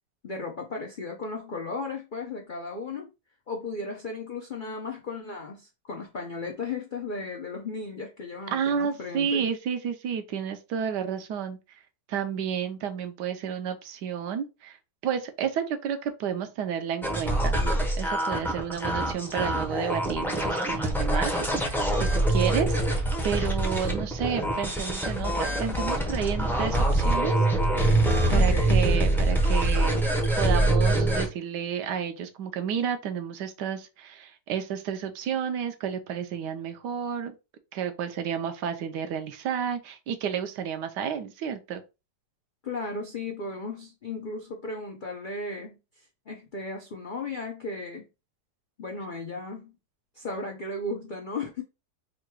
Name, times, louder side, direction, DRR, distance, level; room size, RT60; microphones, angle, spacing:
voice 1, 0.2-3.1 3.5-9.4 28.3-28.8 42.6-48.1 48.8-49.7 50.1-51.6, left 3 dB, 80° left, 0.4 m, -35 dB
voice 2, 8.5-11.6 12.1-14.8 15.0-17.6 18.0-27.3 28.3-30.1 30.4-37.3 37.7-41.8, right 8 dB, 75° right, 1.2 m, -31 dB
sound 1, 17.0-31.2, right 1 dB, 5° left, 0.3 m, -24 dB
3.8 x 2.2 x 4.5 m
omnidirectional pair, 1.9 m